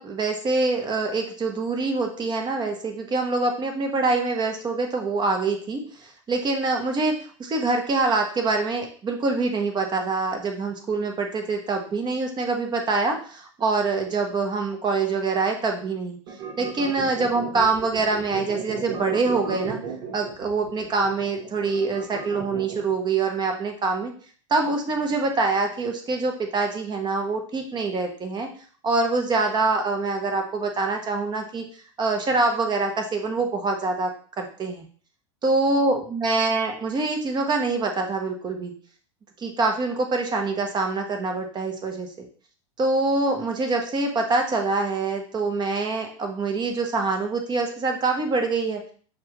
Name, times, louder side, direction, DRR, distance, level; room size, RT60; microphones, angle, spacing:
voice 1, 0.0-7.1 7.4-16.2 16.6-19.8 20.1-24.1 24.5-28.5 28.8-31.6 32.0-34.1 34.4-34.8 35.4-38.7 39.4-42.3 42.8-48.8, right 3 dB, 25° right, 4 dB, 1.0 m, -25 dB
sound 1, 16.3-23.0, right 6 dB, 55° right, 1.1 m, -34 dB
5.9 x 2.4 x 3.1 m, 0.44 s
hypercardioid pair, 90°, 17 cm